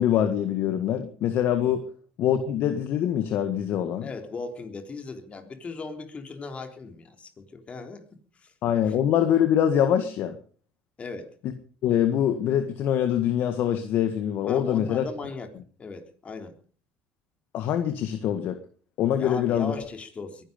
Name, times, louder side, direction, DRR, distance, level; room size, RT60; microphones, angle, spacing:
voice 1, 0.0-1.8 2.2-4.1 8.6-10.4 11.8-15.1 17.5-18.6 19.0-19.7, left 10 dB, 65° left, 8 dB, 1.8 m, -24 dB
voice 2, 4.0-8.5 8.9-9.0 11.0-11.3 14.5-15.5 15.8-16.6 19.2-20.4, left 4 dB, 35° left, 6 dB, 3.7 m, -38 dB
22.5 x 11.0 x 5.3 m, 0.42 s
supercardioid pair, 90°, 4 cm